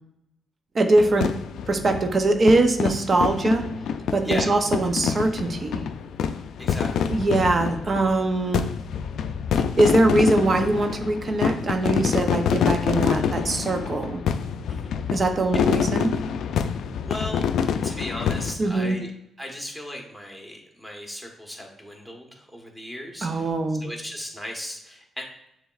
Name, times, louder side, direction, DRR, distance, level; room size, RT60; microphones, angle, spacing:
voice 1, 0.7-1.4 1.7-3.7 4.1-5.8 7.1-8.7 9.8-14.2 15.1-16.2 18.6-19.0 23.2-23.8, right 2 dB, 45° right, 6 dB, 0.6 m, -22 dB
sound 1, 1.0-18.5, left 7 dB, 75° left, 0.3 m, -26 dB
voice 2, 6.6-7.1 14.7-15.2 17.0-17.4 17.8-19.1 19.4-25.3, left 1 dB, 5° right, 1 dB, 1.3 m, -36 dB
6.9 x 3.0 x 2.4 m, 0.81 s
supercardioid pair, 60°, 0 cm